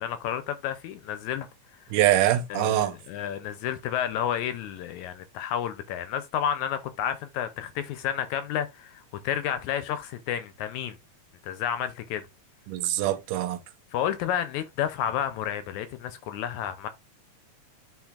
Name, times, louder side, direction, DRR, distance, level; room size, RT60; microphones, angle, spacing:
voice 1, 0.0-1.5 2.5-11.0 11.4-12.2 13.9-16.9, left 9 dB, 80° left, 1.8 m, -31 dB
voice 2, 1.9-3.0 12.7-13.6, right 13 dB, 85° right, 2.3 m, -24 dB
11.5 x 3.9 x 2.3 m
omnidirectional pair, 3.7 m